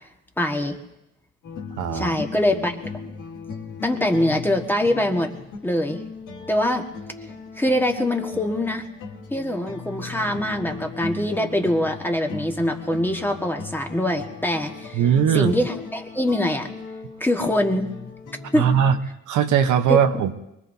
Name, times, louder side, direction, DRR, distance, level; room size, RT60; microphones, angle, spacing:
voice 1, 0.4-0.8 1.9-2.8 3.8-5.3 5.6-6.0 6.5-6.9 7.6-8.9 9.3-15.0 15.3-16.7 17.2-17.9 18.5-18.7 19.9-20.0, left 1 dB, 5° left, 3 dB, 1.6 m, -23 dB
sound 1, 1.4-19.0, left 4 dB, 85° left, 2.4 m, -37 dB
voice 2, 1.8-2.2 14.9-15.5 18.5-19.0 19.3-20.3, right 8 dB, 75° right, 7 dB, 1.0 m, -19 dB
24.0 x 21.0 x 2.8 m, 0.86 s
cardioid pair, 90°, 30 cm